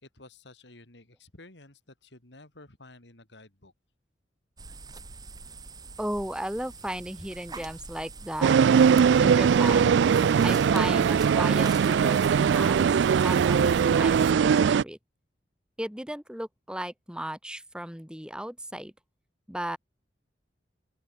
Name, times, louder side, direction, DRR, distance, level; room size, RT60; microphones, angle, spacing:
voice 1, 0.0-3.7, left 2 dB, 80° left, 3.4 m, -52 dB
sound 1, 4.6-14.3, right 4 dB, 20° right, 1.2 m, -43 dB
voice 2, 6.0-8.6 9.2-10.0 10.4-12.9 13.2-15.0 15.8-18.9 19.5-19.8, right 1 dB, 5° right, 2.9 m, -35 dB
sound 2, 8.4-14.8, right 7 dB, 80° right, 0.3 m, -21 dB
open air
head